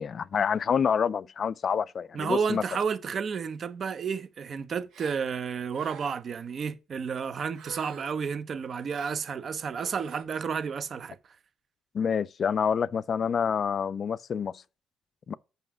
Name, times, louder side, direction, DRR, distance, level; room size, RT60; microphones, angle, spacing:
voice 1, 0.0-2.6 11.9-14.6 15.3-15.4, left 7 dB, 50° left, 0.4 m, -27 dB
voice 2, 2.1-11.2, right 6 dB, 50° right, 0.8 m, -31 dB
Gasp, 4.9-5.2 5.7-6.3 7.5-8.2 8.9-9.2 9.7-10.2, right 7 dB, 80° right, 1.2 m, -47 dB
5.6 x 5.5 x 6.1 m
cardioid pair, 90°, 0 cm